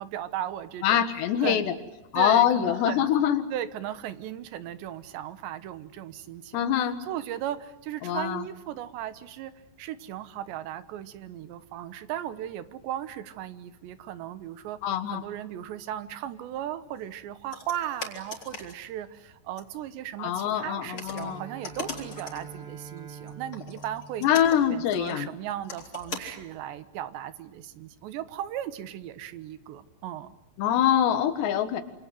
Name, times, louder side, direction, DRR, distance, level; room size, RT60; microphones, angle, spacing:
voice 1, 0.0-1.0 1.4-1.7 2.2-3.1 3.5-9.5 9.8-14.8 15.1-24.3 24.7-30.4, right 11 dB, 90° right, 13 dB, 3.5 m, -36 dB
voice 2, 0.8-1.6 2.1-3.4 6.5-7.0 8.0-8.4 14.8-15.2 20.2-21.4 24.2-25.3 30.6-31.8, left 10 dB, 80° left, 10 dB, 3.8 m, -24 dB
sound 1, 17.5-18.8 19.6-19.7 20.4-20.5 20.9-22.6 23.0-26.5, left 4 dB, 30° left, 4.2 m, -40 dB
Bowed string instrument, 20.9-25.0, right 5 dB, 35° right, 8.1 m, -46 dB
27.0 x 27.0 x 7.7 m, 1.0 s
omnidirectional pair, 4.9 m